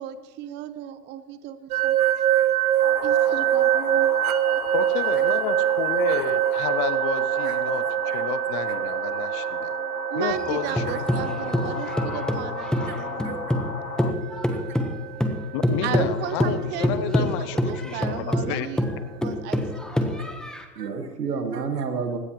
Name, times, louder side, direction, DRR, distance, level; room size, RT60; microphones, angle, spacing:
voice 1, 0.0-2.0 3.0-4.1 10.1-13.2 15.8-18.8 19.2-19.6 20.0-20.1, right 11 dB, 25° right, 12 dB, 0.8 m, -34 dB
sound 1, 1.7-16.6, right 13 dB, 65° right, 0.7 m, -25 dB
voice 2, 2.0-2.5 2.7-3.0 5.2-5.3 7.4-7.5 8.1-8.3 8.7-8.8 10.9-11.0 12.9-13.0 13.2-13.4 20.8-22.2, right 5 dB, 80° right, 6 dB, 1.9 m, -32 dB
sound 2, 2.8-14.1, left 10 dB, 65° left, 1.1 m, -36 dB
voice 3, 4.7-9.8 10.1-11.5 15.5-18.7, left 11 dB, 20° left, 12 dB, 0.4 m, -31 dB
sound 3, 10.3-13.7 14.0-20.6, left 1 dB, ahead, 1.1 m, -25 dB
18.5 x 17.0 x 3.1 m, 1.3 s
hypercardioid pair, 120°, 47 cm